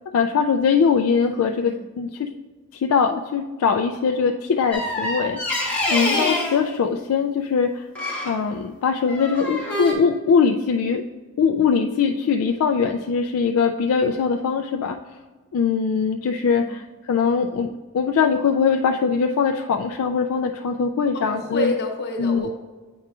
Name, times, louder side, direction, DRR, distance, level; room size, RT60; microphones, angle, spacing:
voice 1, 0.1-2.3 2.7-5.4 5.9-7.8 8.2-11.0 11.4-15.0 15.5-17.7 17.9-21.7 22.2-22.5, left 6 dB, 75° left, 4 dB, 0.3 m, -21 dB
voice 2, 1.2-1.9 16.5-16.9 21.1-22.5, left 1 dB, 50° left, 1 dB, 0.9 m, -29 dB
sound 1, 4.7-6.6 7.9-8.4 9.0-9.9, left 2 dB, 5° left, 1.1 m, -25 dB
8.6 x 4.7 x 2.4 m, 1.4 s
head